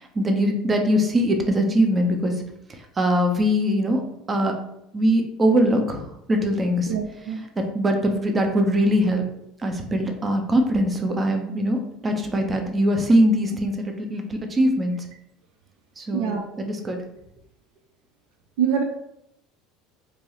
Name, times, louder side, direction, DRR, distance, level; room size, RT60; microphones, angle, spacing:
voice 1, 0.0-2.4 2.7-4.0 4.3-4.5 4.9-7.0 7.3-7.5 7.7-9.2 9.6-15.1 16.0-17.0, equal, 25° right, 4 dB, 0.7 m, -22 dB
voice 2, 6.9-7.4 16.1-16.4 18.6-18.8, right 8 dB, 65° right, 3 dB, 0.4 m, -24 dB
4.6 x 2.7 x 2.9 m, 0.79 s
figure-of-eight pair, 70°, 0 cm